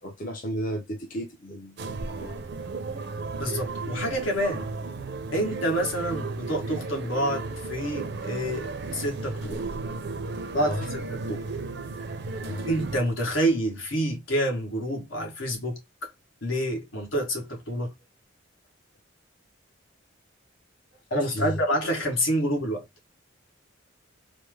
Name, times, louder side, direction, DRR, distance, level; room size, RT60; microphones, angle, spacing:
voice 1, 0.0-2.4 10.7-10.9 12.4-12.7 21.3-21.6, equal, 40° left, 0.6 m, -34 dB
sound 1, 1.8-13.0, right 3 dB, 55° right, 0.4 m, -34 dB
voice 2, 3.4-4.7 5.3-9.6 10.5-11.5 12.6-16.1 16.4-17.9 21.1-22.9, equal, 75° left, 1.3 m, -28 dB
3.2 x 2.0 x 3.3 m
head